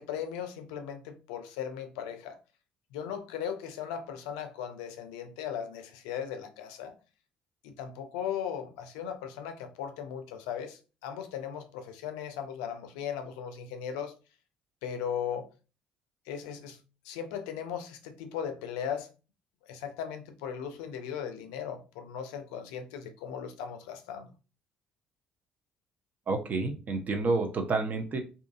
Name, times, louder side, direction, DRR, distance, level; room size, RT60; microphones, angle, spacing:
voice 1, 0.0-2.4 2.9-7.0 7.6-14.1 14.8-15.5 16.3-16.8 17.0-19.1 19.7-24.3, left 8 dB, 85° left, 0.4 m, -37 dB
voice 2, 26.3-28.2, right 3 dB, 50° right, 0.7 m, -29 dB
2.7 x 2.4 x 2.3 m
hypercardioid pair, 60°, 4 cm